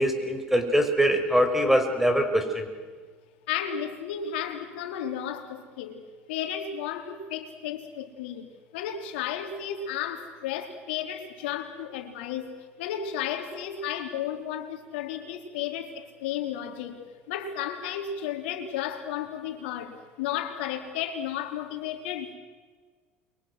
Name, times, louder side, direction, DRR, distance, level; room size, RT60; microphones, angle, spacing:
voice 1, 0.0-2.7, equal, 5° right, 6 dB, 6.0 m, -23 dB
voice 2, 3.5-5.5 5.8-6.0 6.3-8.5 8.7-12.5 12.8-15.9 16.2-17.0 17.3-22.3, left 9 dB, 80° left, 5 dB, 3.8 m, -33 dB
30.0 x 24.5 x 6.4 m, 1.5 s
hypercardioid pair, 75°, 6 cm